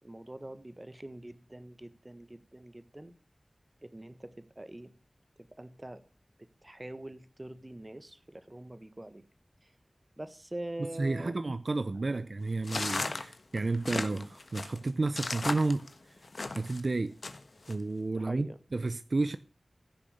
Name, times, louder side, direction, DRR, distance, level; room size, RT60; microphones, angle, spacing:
voice 1, 0.0-3.1 3.8-4.9 5.4-6.0 6.4-9.2 9.6-9.7 10.2-11.4 11.9-12.2 13.0-13.2 18.1-18.6, right 1 dB, 25° right, 1.5 m, -44 dB
voice 2, 11.0-15.9 16.5-17.2 17.7-19.4, right 3 dB, 65° right, 0.7 m, -31 dB
sound 1, 12.6-16.8 17.2-17.7, left 3 dB, 70° left, 1.4 m, -35 dB
16.0 x 6.9 x 6.6 m
wide cardioid pair, 65°, 0 cm